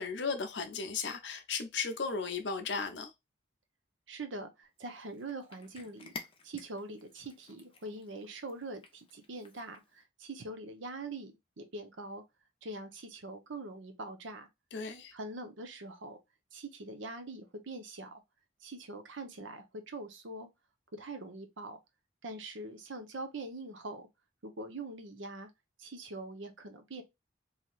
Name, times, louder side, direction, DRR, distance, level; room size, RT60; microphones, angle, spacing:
voice 1, 0.0-3.1 14.7-15.1, left 5 dB, 75° left, 0.6 m, -35 dB
voice 2, 4.1-6.1 6.4-12.2 12.6-14.5 15.1-16.2 16.5-18.2 18.6-20.5 20.9-21.8 22.2-24.1 24.4-25.5 25.8-27.0, right 2 dB, 90° right, 0.8 m, -43 dB
Cat, 4.8-10.0, left 4 dB, 25° left, 0.5 m, -52 dB
3.2 x 2.8 x 2.3 m
head